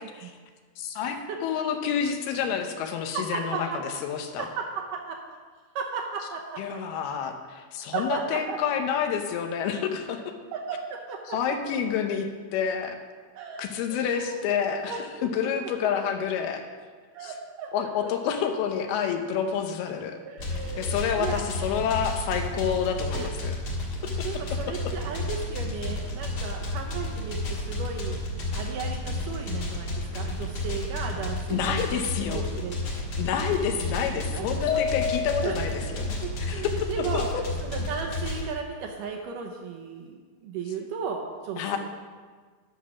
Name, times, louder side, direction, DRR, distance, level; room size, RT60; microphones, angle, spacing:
voice 1, 0.8-4.5 6.6-10.3 11.3-12.3 12.5-13.0 13.6-16.6 17.2-17.3 17.7-20.2 20.5-23.6 31.5-32.4 33.2-37.4 41.6-41.8, left 7 dB, 85° left, 5 dB, 2.9 m, -29 dB
voice 2, 3.1-3.8 4.4-5.2 5.8-7.0 7.9-8.6 10.5-11.4 13.3-13.6 13.9-15.7 17.1-18.1 20.2-21.5 23.1-23.3 24.2-28.2 28.5-32.8 34.3-34.8 35.4-37.3 37.6-41.8, right 6 dB, 75° right, 2 dB, 2.1 m, -35 dB
sound 1, 20.4-38.4, left 2 dB, 50° left, 1.9 m, -32 dB
sound 2, 34.7-35.9, left 8 dB, 65° left, 2.4 m, -29 dB
10.5 x 6.3 x 6.1 m, 1.5 s
omnidirectional pair, 4.4 m